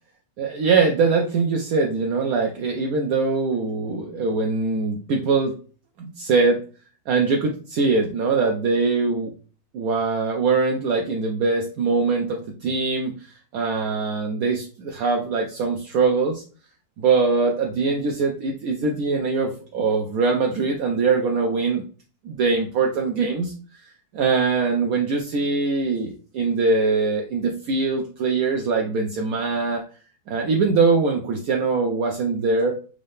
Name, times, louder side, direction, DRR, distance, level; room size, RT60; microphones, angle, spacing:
voice 1, 0.4-5.5 6.0-6.6 7.1-9.3 9.7-16.4 17.0-21.8 22.2-23.5 24.1-29.8 30.3-32.8, right 4 dB, 70° right, 1 dB, 0.9 m, -22 dB
3.6 x 2.6 x 3.4 m, 0.39 s
omnidirectional pair, 2.0 m